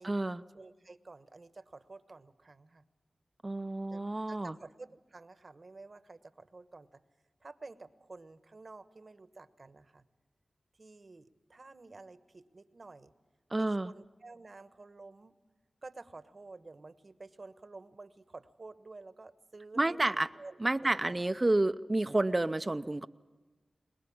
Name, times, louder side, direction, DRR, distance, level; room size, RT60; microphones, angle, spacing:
voice 1, 0.0-0.4 3.4-4.6 13.5-13.9 19.8-20.3 20.6-23.1, right 2 dB, 35° right, 10 dB, 0.7 m, -30 dB
voice 2, 0.5-2.8 3.9-7.0 7.4-10.0 10.8-13.1 13.6-15.4 15.8-21.2, right 3 dB, 55° right, 12 dB, 1.2 m, -51 dB
22.5 x 20.0 x 8.7 m, 1.2 s
cardioid pair, 40°, 0 cm